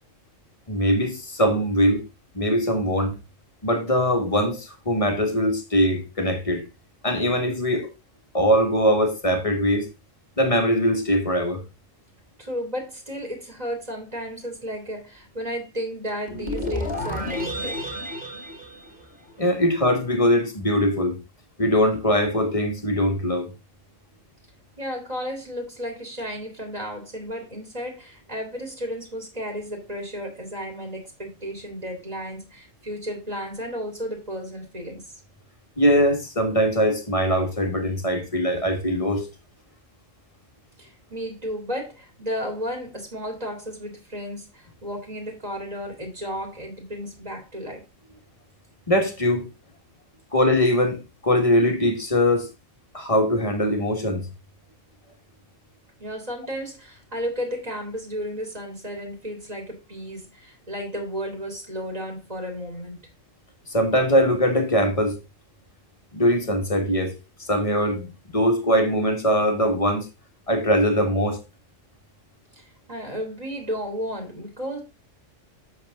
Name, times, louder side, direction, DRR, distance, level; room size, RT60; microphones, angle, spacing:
voice 1, 0.7-2.1 2.3-3.2 3.6-6.7 7.0-7.9 8.3-9.9 10.4-11.6 19.4-21.2 21.6-23.5 35.8-39.3 48.9-49.5 50.3-52.5 52.9-54.3 63.7-65.2 66.1-67.1 67.4-70.1 70.5-71.4, equal, 25° left, 1.7 m, -21 dB
voice 2, 12.4-17.8 24.8-35.2 40.8-47.9 56.0-63.0 72.5-74.8, equal, 30° right, 2.3 m, -33 dB
sound 1, 16.3-19.5, left 1 dB, 5° right, 2.4 m, -31 dB
7.7 x 7.1 x 3.7 m
omnidirectional pair, 1.3 m